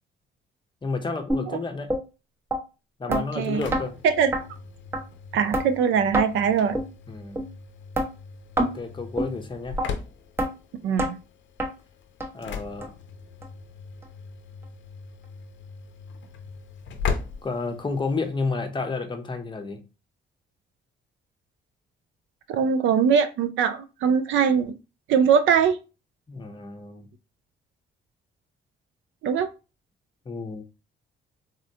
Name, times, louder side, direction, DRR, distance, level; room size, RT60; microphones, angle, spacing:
voice 1, 0.8-2.0 3.0-4.0 7.1-7.4 8.6-9.8 12.3-12.9 17.4-19.8 26.3-27.1 30.3-30.7, left 3 dB, 25° left, 0.6 m, -31 dB
sound 1, 1.3-1.4 1.9-2.0 2.5-2.6 3.1-3.2 3.7-3.8 4.3-4.4 4.9-5.0 5.5-5.7 6.1-6.3 6.7-6.9 7.4-7.5 7.9-8.1 8.6-8.7 9.2-9.3 9.8-9.9 10.4-10.5 11.0-11.1 11.6-11.7 12.2-12.3 12.8-12.9 13.4-13.5 14.0-14.1, right 1 dB, 10° right, 0.7 m, -25 dB
voice 2, 3.1-3.7 4.0-4.3 5.3-6.8 10.8-11.2 22.5-24.7 25.1-25.8 29.2-29.5, right 7 dB, 75° right, 0.4 m, -22 dB
Engine / Slam, 3.2-18.4, left 5 dB, 70° left, 0.5 m, -38 dB
3.7 x 2.1 x 2.6 m
cardioid pair, 90°, 20 cm